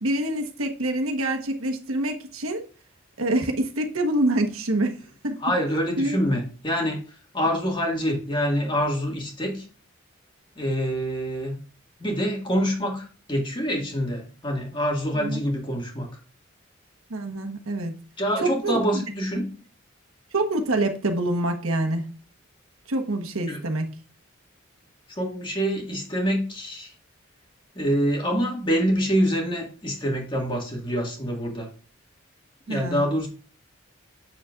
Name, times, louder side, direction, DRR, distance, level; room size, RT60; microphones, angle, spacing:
voice 1, 0.0-2.6 3.2-5.0 5.2-5.4 6.0-6.2 15.2-15.4 17.1-17.9 18.4-18.8 20.3-22.0 22.9-23.9 32.7-33.1, right 1 dB, 85° right, 1.3 m, -26 dB
voice 2, 5.4-7.0 7.3-9.7 10.6-11.6 12.0-16.1 18.2-19.5 23.5-23.6 25.1-26.9 27.8-31.7 32.7-33.3, equal, 25° left, 1.9 m, -26 dB
7.4 x 7.1 x 2.5 m
head